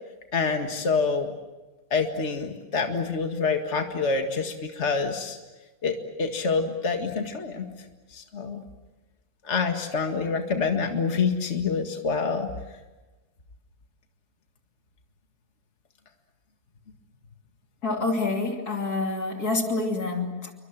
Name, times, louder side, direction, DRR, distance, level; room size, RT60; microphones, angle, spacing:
voice 1, 0.3-1.3 1.9-5.4 5.8-7.7 8.1-8.6 9.5-12.5, left 4 dB, 50° left, 4 dB, 2.2 m, -26 dB
voice 2, 17.8-20.5, left 3 dB, 90° left, 3 dB, 3.5 m, -27 dB
29.0 x 24.0 x 7.5 m, 1.1 s
omnidirectional pair, 1.6 m